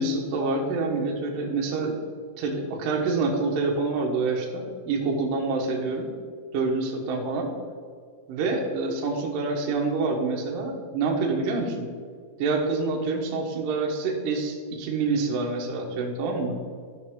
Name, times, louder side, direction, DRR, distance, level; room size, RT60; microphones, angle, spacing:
voice 1, 0.0-2.0 2.4-6.1 6.5-7.5 8.3-11.9 12.4-16.6, right 3 dB, 75° right, 0 dB, 1.9 m, -27 dB
12.0 x 6.1 x 3.7 m, 2.1 s
omnidirectional pair, 5.6 m